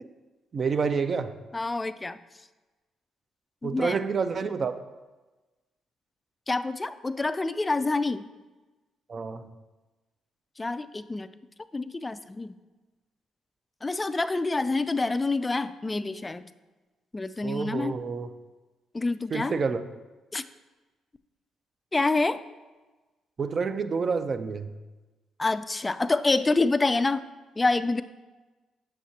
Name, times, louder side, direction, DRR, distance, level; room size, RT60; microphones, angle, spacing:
voice 1, 0.5-1.3 3.6-4.7 9.1-9.4 17.4-18.3 19.3-19.8 23.4-24.7, right 5 dB, 45° right, 10 dB, 0.5 m, -28 dB
voice 2, 1.5-2.2 3.6-4.0 6.5-8.3 10.6-11.3 11.7-12.6 13.8-16.5 17.1-17.9 18.9-19.6 20.3-20.4 21.9-22.4 25.4-27.2 27.6-28.0, left 3 dB, 20° left, 12 dB, 0.3 m, -27 dB
7.3 x 6.5 x 2.8 m, 1.2 s
cardioid pair, 90°, 0 cm